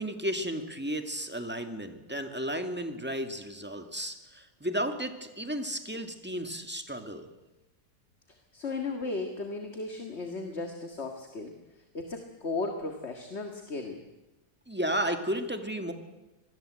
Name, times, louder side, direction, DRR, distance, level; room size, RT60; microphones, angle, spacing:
voice 1, 0.0-7.3 14.7-15.9, equal, 5° right, 6 dB, 2.0 m, -33 dB
voice 2, 8.5-14.0, left 3 dB, 40° left, 5 dB, 2.1 m, -36 dB
25.5 x 20.0 x 7.9 m, 1.1 s
omnidirectional pair, 1.7 m